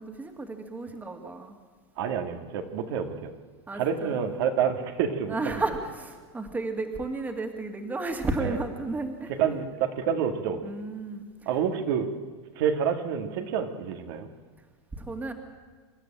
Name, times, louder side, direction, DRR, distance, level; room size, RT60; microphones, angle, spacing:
voice 1, 0.0-1.6 3.7-4.2 5.3-9.3 10.6-11.3 15.0-15.3, right 3 dB, 10° right, 5 dB, 2.2 m, -33 dB
voice 2, 2.0-3.3 3.7-5.6 8.4-8.6 9.4-10.6 11.5-12.1 12.6-14.3, right 7 dB, 60° right, 5 dB, 2.0 m, -28 dB
26.5 x 12.5 x 8.9 m, 1.5 s
supercardioid pair, 135°, 14 cm